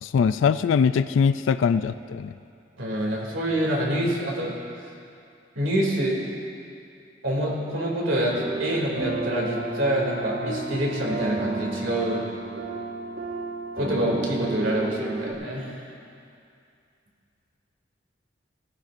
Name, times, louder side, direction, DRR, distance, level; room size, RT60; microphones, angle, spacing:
voice 1, 0.0-2.3, left 6 dB, 85° left, 12 dB, 0.3 m, -22 dB
voice 2, 2.8-4.5 5.5-6.2 7.2-12.2 13.7-15.8, right 1 dB, 90° right, -3 dB, 2.7 m, -26 dB
sound 1, 8.3-15.3, right 3 dB, 65° right, 1.9 m, -32 dB
17.5 x 14.5 x 2.6 m, 2.5 s
head